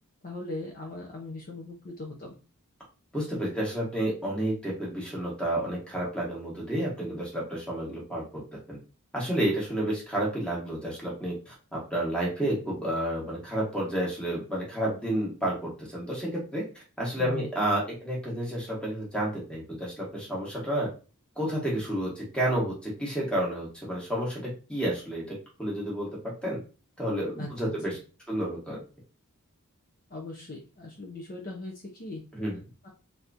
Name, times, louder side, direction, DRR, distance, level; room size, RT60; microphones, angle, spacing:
voice 1, 0.2-2.3 17.2-17.5 27.4-27.7 30.1-32.2 32.8-32.9, left 2 dB, 40° left, -1 dB, 0.6 m, -39 dB
voice 2, 3.1-8.4 8.7-8.8 9.1-16.6 17.0-20.9 21.4-26.1 26.4-26.6 27.0-28.0 28.3-28.8 32.3-32.6, right 1 dB, 5° left, -3 dB, 1.1 m, -30 dB
3.4 x 2.9 x 2.5 m, 0.33 s
head